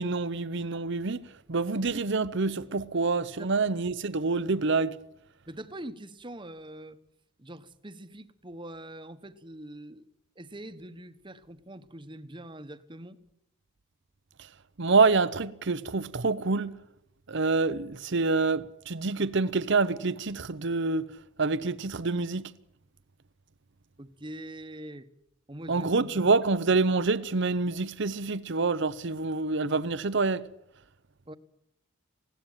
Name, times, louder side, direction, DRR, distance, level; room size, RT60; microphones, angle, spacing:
voice 1, 0.0-5.0 14.8-16.8 17.3-21.1 21.4-22.5 25.7-30.4, right 3 dB, 60° right, 0.8 m, -27 dB
voice 2, 5.5-7.0 7.4-10.0 10.4-13.2 24.0-25.1 25.5-25.9 31.3-31.4, right 1 dB, 25° right, 1.2 m, -43 dB
20.5 x 17.0 x 9.0 m
head